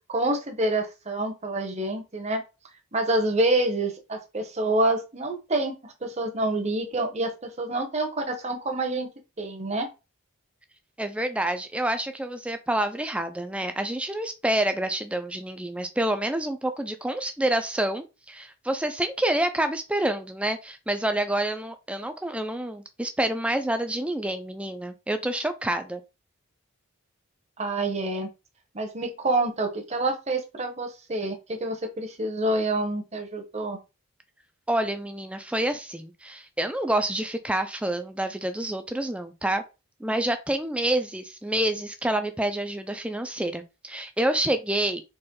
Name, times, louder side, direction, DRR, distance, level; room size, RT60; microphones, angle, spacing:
voice 1, 0.1-2.4 2.9-9.1 9.4-9.9 27.6-28.3 28.7-33.8, right 2 dB, 30° right, 4 dB, 0.9 m, -27 dB
voice 2, 11.0-26.0 34.7-39.6 40.0-45.0, right 1 dB, 5° right, 8 dB, 0.4 m, -28 dB
4.3 x 3.1 x 3.8 m, 0.28 s
head